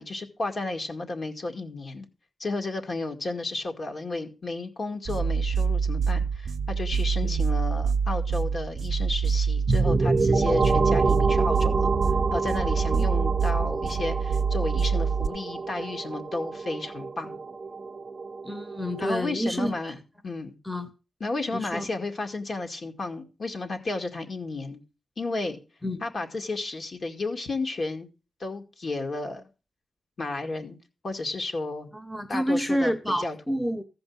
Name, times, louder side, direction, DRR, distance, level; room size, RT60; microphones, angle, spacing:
voice 1, 0.0-2.1 2.4-11.9 12.3-17.4 19.0-20.0 20.2-20.5 21.2-24.8 25.2-25.6 26.0-28.1 28.4-29.5 30.2-30.8 31.0-31.9 32.3-33.4, left 2 dB, 45° left, 4 dB, 2.1 m, -32 dB
sound 1, 5.0-15.3, right 5 dB, 60° right, 0.7 m, -26 dB
sound 2, 9.7-19.2, right 4 dB, 30° right, 0.8 m, -27 dB
voice 2, 18.4-19.9 20.6-20.9 21.5-21.9 25.8-26.0 31.9-33.8, equal, 5° left, 8 dB, 1.1 m, -29 dB
15.0 x 5.3 x 7.3 m, 0.32 s
wide cardioid pair, 135°, 0 cm